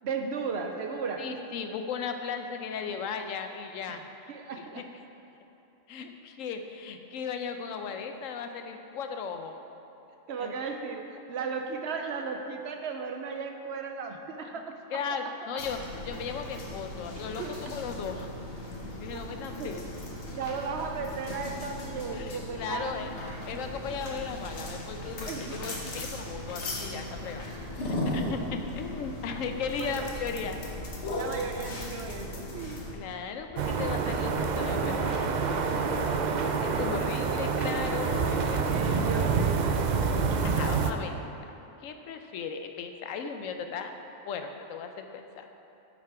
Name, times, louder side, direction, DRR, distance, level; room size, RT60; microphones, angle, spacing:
voice 1, 0.0-1.3 4.3-4.8 10.3-15.0 15.4-15.5 17.4-17.5 19.6-19.7 20.3-23.2 25.2-25.8 29.8-30.1 31.2-32.8 36.7-37.3 38.7-40.0, right 5 dB, 65° right, 4 dB, 0.8 m, -36 dB
voice 2, 1.2-4.0 4.6-4.8 5.9-9.6 10.4-10.5 14.4-14.6 14.9-18.3 19.0-19.8 22.1-23.1 23.5-27.5 27.7-30.6 32.9-35.3 36.6-38.6 38.9-39.0 40.4-41.2 41.8-43.9 44.3-45.5, left 6 dB, 80° left, 6 dB, 1.0 m, -36 dB
sound 1, 15.6-32.9, left 1 dB, 60° left, 1.4 m, -37 dB
sound 2, 23.2-35.9, right 1 dB, 5° right, 1.9 m, -49 dB
sound 3, 33.6-40.9, right 5 dB, 90° right, 0.4 m, -27 dB
8.5 x 6.1 x 4.7 m, 2.9 s
omnidirectional pair, 1.3 m